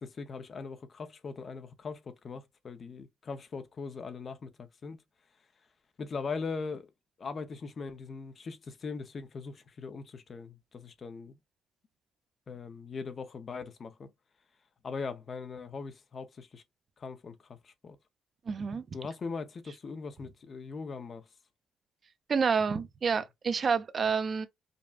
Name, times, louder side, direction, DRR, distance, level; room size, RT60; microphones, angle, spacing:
voice 1, 0.0-5.0 6.0-6.9 7.2-11.4 12.5-14.1 14.8-16.6 17.0-18.0 18.9-21.2, left 4 dB, 45° left, 0.8 m, -40 dB
voice 2, 18.5-18.8 22.3-24.5, right 5 dB, 45° right, 0.6 m, -28 dB
5.2 x 2.3 x 2.4 m
cardioid pair, 90°, 0 cm